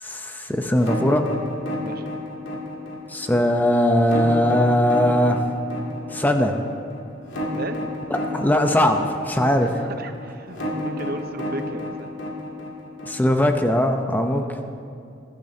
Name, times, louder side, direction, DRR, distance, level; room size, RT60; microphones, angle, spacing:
voice 1, 0.0-1.3 3.1-5.4 6.1-6.5 8.1-9.7 13.1-14.6, left 1 dB, 10° left, 5 dB, 0.6 m, -20 dB
sound 1, 0.8-13.7, equal, 70° left, 2.3 m, -31 dB
voice 2, 7.5-7.8 9.6-12.1 14.3-14.5, right 2 dB, 50° right, 7 dB, 0.8 m, -35 dB
20.5 x 12.0 x 2.8 m, 2.6 s
head